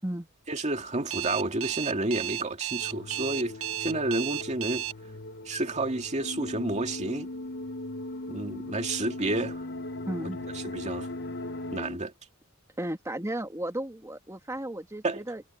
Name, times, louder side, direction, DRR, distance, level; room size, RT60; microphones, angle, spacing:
voice 1, 0.5-4.8 5.5-7.3 8.3-9.6 10.7-11.1 11.7-12.1 15.0-15.2, right 2 dB, 35° right, 2.2 m, -30 dB
Alarm, 1.1-4.9, right 13 dB, 70° right, 1.3 m, -33 dB
sound 1, 2.8-11.9, left 1 dB, 55° left, 1.3 m, -42 dB
sound 2, 6.2-12.0, left 2 dB, 70° left, 1.9 m, -38 dB
voice 2, 10.1-10.4 12.8-15.4, right 1 dB, 15° right, 2.3 m, -34 dB
head